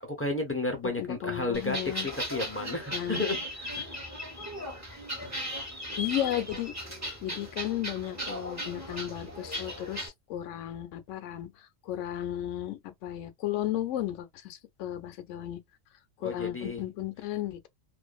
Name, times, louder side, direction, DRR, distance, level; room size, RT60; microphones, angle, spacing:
voice 1, 0.0-3.9 16.2-16.8, left 2 dB, 15° left, 0.5 m, -32 dB
voice 2, 0.8-2.1 2.9-3.3 6.0-6.7 7.2-15.6 16.2-17.7, left 12 dB, 70° left, 0.9 m, -34 dB
sound 1, 1.5-10.1, equal, 15° right, 0.8 m, -37 dB
2.5 x 2.5 x 2.2 m
omnidirectional pair, 1.4 m